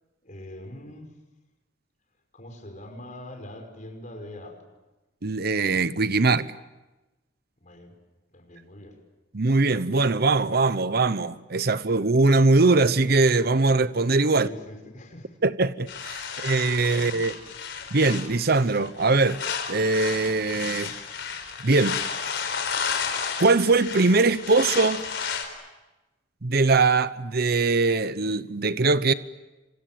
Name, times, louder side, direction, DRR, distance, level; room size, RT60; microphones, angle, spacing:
voice 1, 0.2-1.2 2.3-4.7 7.6-8.0 8.3-9.0 14.3-15.4 17.0-17.3, left 1 dB, 40° left, 5.3 m, -43 dB
voice 2, 5.2-6.5 9.3-14.5 15.4-17.3 17.9-19.4 19.7-20.9 21.6-22.0 22.8-22.9 23.4-25.0 26.4-29.1, right 3 dB, 55° right, 0.9 m, -21 dB
sound 1, 15.9-25.4, left 6 dB, 65° left, 4.6 m, -32 dB
29.5 x 26.0 x 7.5 m
head